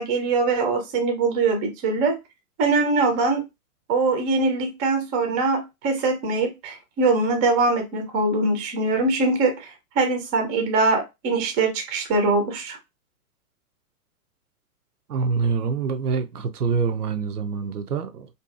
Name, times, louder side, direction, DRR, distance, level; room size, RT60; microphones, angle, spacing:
voice 1, 0.0-2.2 2.6-3.4 3.9-12.8, right 3 dB, 20° right, 0.5 m, -22 dB
voice 2, 15.1-18.3, right 5 dB, 85° right, 0.6 m, -25 dB
2.6 x 2.4 x 2.4 m
hypercardioid pair, 120°, 45 cm